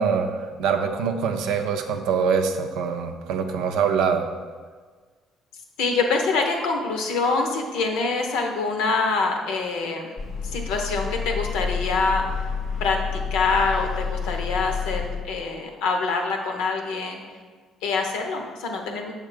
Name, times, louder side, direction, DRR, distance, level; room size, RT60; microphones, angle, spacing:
voice 1, 0.0-4.3, right 6 dB, 80° right, 5 dB, 0.5 m, -24 dB
voice 2, 5.8-10.2 10.4-12.3 12.8-17.2 17.8-19.1, left 4 dB, 80° left, 3 dB, 0.8 m, -25 dB
sound 1, 10.2-15.5, left 6 dB, 50° left, 0.6 m, -29 dB
6.7 x 3.2 x 5.0 m, 1.5 s
supercardioid pair, 60°, 0 cm